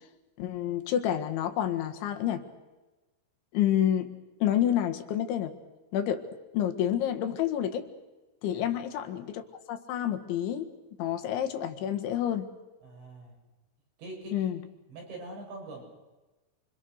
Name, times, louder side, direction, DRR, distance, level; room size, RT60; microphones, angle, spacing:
voice 1, 0.4-2.4 3.5-4.1 4.4-5.5 5.9-6.3 6.5-7.9 8.4-9.4 9.7-10.7 11.0-12.5 14.3-14.6, left 10 dB, 90° left, 6 dB, 4.2 m, -28 dB
voice 2, 12.8-13.3 14.0-14.5 14.9-15.8, right 2 dB, 75° right, 0 dB, 9.8 m, -43 dB
29.5 x 26.0 x 6.6 m, 1.1 s
omnidirectional pair, 5.1 m